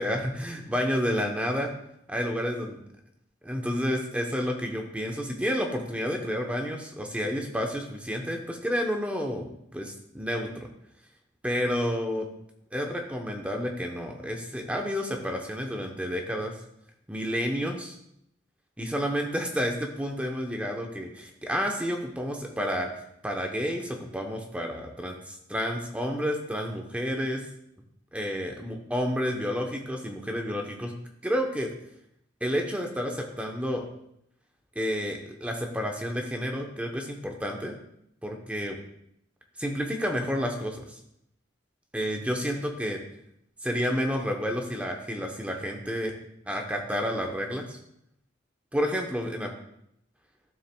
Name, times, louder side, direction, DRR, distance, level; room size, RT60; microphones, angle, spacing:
voice 1, 0.0-1.7 2.1-2.8 3.5-10.7 11.4-12.3 12.7-16.5 17.1-18.0 18.8-22.9 23.2-27.4 28.1-30.9 31.2-31.7 32.4-33.8 34.8-37.8 38.2-38.8 39.6-41.0 41.9-43.0 43.6-46.1 46.5-47.8 48.7-49.5, equal, 5° right, 2 dB, 0.8 m, -30 dB
12.5 x 7.2 x 2.2 m, 0.74 s
head